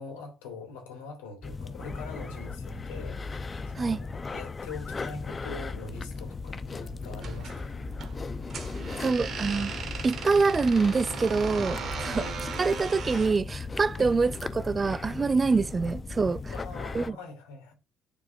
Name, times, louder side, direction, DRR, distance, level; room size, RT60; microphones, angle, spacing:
voice 1, 0.0-7.7 12.0-12.4 14.0-14.2 15.6-15.7 16.5-17.7, left 3 dB, 80° left, 2.7 m, -43 dB
sound 1, 1.4-17.1, left 4 dB, 30° left, 0.7 m, -37 dB
sound 2, 7.2-13.4, right 5 dB, 50° right, 1.6 m, -38 dB
voice 2, 9.0-9.7 10.0-12.2 12.6-16.5 16.9-17.2, right 4 dB, 30° right, 0.4 m, -25 dB
9.9 x 4.9 x 2.6 m
hypercardioid pair, 50°, 0 cm